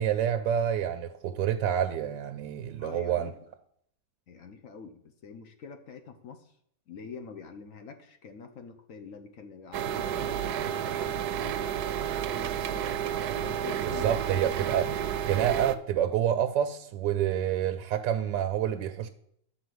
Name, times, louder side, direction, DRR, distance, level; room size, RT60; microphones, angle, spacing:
voice 1, 0.0-3.3 13.8-14.9 15.3-19.1, right 10 dB, 90° right, 1.3 m, -28 dB
voice 2, 2.8-3.3 4.3-6.6 6.9-11.7 12.3-13.0 13.4-15.0, left 5 dB, 55° left, 1.1 m, -45 dB
sound 1, 9.7-15.7, right 9 dB, 70° right, 1.1 m, -31 dB
10.5 x 4.2 x 7.7 m
omnidirectional pair, 1.9 m